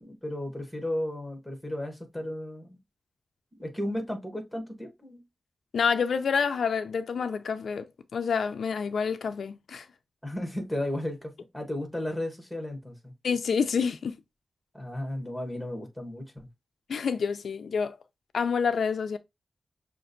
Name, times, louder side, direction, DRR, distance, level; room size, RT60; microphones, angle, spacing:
voice 1, 0.0-2.8 3.6-5.2 10.2-13.1 14.7-16.5, left 1 dB, ahead, 1.1 m, -34 dB
voice 2, 5.7-7.9 8.1-9.9 13.2-14.1 16.9-18.0 18.3-19.2, left 6 dB, 85° left, 0.4 m, -28 dB
5.9 x 2.5 x 2.5 m
wide cardioid pair, 165°, 0 cm